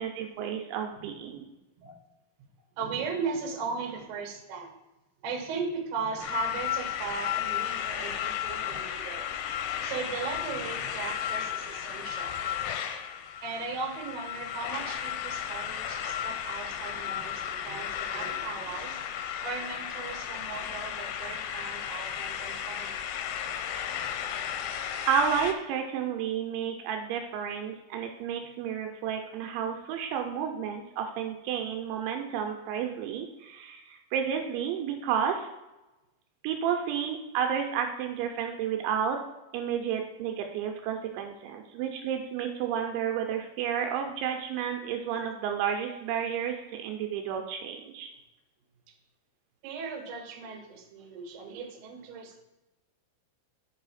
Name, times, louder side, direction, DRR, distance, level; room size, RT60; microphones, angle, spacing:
voice 1, 0.0-1.5 24.4-24.8 25.1-35.5 36.4-39.2 39.5-48.1, right 8 dB, 85° right, 4 dB, 3.0 m, -31 dB
voice 2, 2.8-4.7 5.2-9.3 9.8-12.7 13.4-19.0 19.4-23.0 42.7-42.8 49.6-52.4, right 5 dB, 70° right, 1 dB, 2.8 m, -37 dB
sound 1, 6.2-25.5, left 10 dB, 90° left, 3.0 m, -34 dB
6.4 x 5.5 x 4.1 m, 0.98 s
omnidirectional pair, 5.3 m